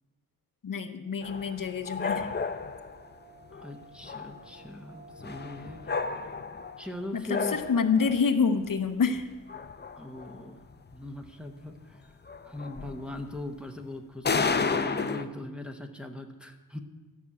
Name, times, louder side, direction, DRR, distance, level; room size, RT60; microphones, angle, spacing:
voice 1, 0.6-2.3 7.1-9.3, left 5 dB, 60° left, 8 dB, 0.8 m, -27 dB
sound 1, 0.8-6.1, right 2 dB, 45° right, 0.9 m, -54 dB
sound 2, 1.2-3.1 3.5-3.7 4.0-4.6 5.2-6.9 7.3-8.3 8.8-8.9 9.2-10.4 10.7-10.9 11.2-11.3 11.8-11.9 12.3-13.4 14.2-15.2, left 4 dB, 30° left, 0.6 m, -32 dB
voice 2, 3.5-5.8 6.8-7.6 10.0-10.6 10.9-12.2 12.4-16.8, left 1 dB, 5° right, 3 dB, 1.0 m, -40 dB
12.5 x 6.1 x 8.4 m, 1.2 s
wide cardioid pair, 115°, 37 cm